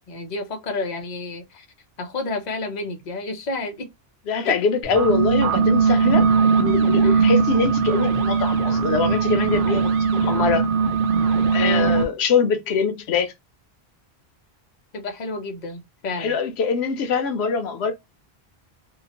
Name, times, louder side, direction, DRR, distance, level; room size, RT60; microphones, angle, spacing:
voice 1, 0.1-1.7 2.0-3.9 4.4-4.6 7.0-7.3 11.6-12.0 14.9-16.4, left 3 dB, 45° left, 0.8 m, -30 dB
voice 2, 4.3-6.3 6.6-10.7 11.5-13.3 16.2-17.9, left 5 dB, 85° left, 0.9 m, -23 dB
sound 1, 4.8-12.0, right 5 dB, 65° right, 0.7 m, -19 dB
2.8 x 2.0 x 2.8 m
omnidirectional pair, 1.1 m